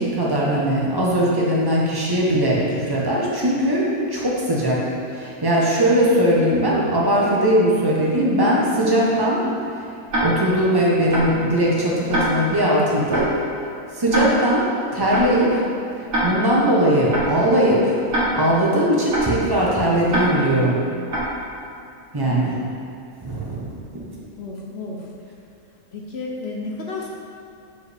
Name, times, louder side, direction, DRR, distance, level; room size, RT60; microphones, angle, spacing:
voice 1, 0.0-4.8 5.1-9.5 10.2-13.3 13.9-14.6 14.9-15.6 16.2-17.9 18.3-20.8 22.1-22.5 23.2-23.8, right 1 dB, 20° right, -5 dB, 0.8 m, -19 dB
Tick-tock, 10.1-10.2 11.1-11.2 12.1-12.2 13.1-13.2 14.1-14.2 15.1-15.2 16.1-16.2 17.1-17.2 18.1-18.2 19.1-19.2 20.1-20.2 21.1-21.2, right 1 dB, 50° right, 1.5 m, -23 dB
voice 2, 22.2-22.6 24.0-24.1 24.4-25.1 25.9-27.1, left 3 dB, 55° left, -2 dB, 0.8 m, -32 dB
6.6 x 4.7 x 3.4 m, 2.6 s
omnidirectional pair, 1.6 m